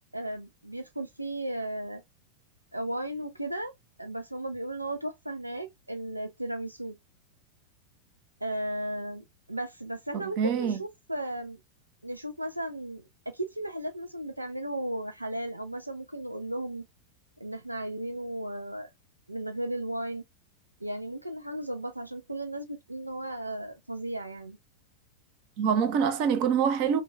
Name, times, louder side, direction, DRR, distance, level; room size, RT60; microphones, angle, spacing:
voice 1, 0.1-2.0 2.7-3.7 4.0-7.0 8.4-11.6 12.0-16.9 17.4-18.9 19.3-20.2 20.8-24.6, right 1 dB, 85° right, 0.3 m, -35 dB
voice 2, 10.1-10.8 25.6-27.0, right 7 dB, 45° right, 0.6 m, -25 dB
3.0 x 2.3 x 3.2 m
figure-of-eight pair, 90°, 0 cm